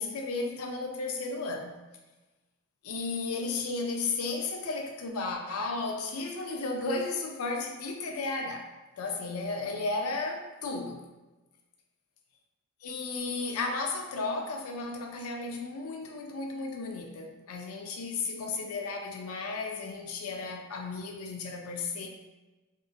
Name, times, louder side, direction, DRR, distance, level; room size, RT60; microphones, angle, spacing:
voice 1, 0.0-1.8 2.8-8.7 9.0-11.1 12.8-22.1, left 3 dB, 70° left, 2 dB, 0.4 m, -34 dB
2.8 x 2.3 x 2.5 m, 1.1 s
head